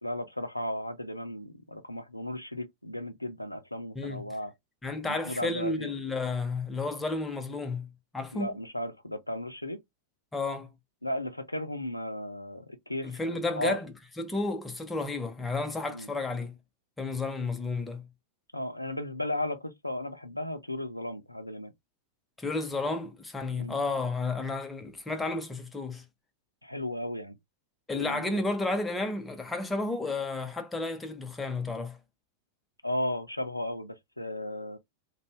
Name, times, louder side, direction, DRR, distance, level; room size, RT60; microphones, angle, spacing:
voice 1, 0.0-4.5 5.0-5.9 8.3-9.8 11.0-13.8 15.9-16.1 18.5-21.7 23.6-23.8 26.6-27.4 28.0-28.4 32.8-34.8, left 1 dB, 85° left, 0.4 m, -35 dB
voice 2, 4.0-4.3 4.8-7.9 8.1-8.5 10.3-10.7 13.0-16.6 17.0-18.0 22.4-26.0 27.9-32.0, left 3 dB, 10° left, 0.7 m, -32 dB
2.6 x 2.2 x 3.4 m
figure-of-eight pair, 90°, 0 cm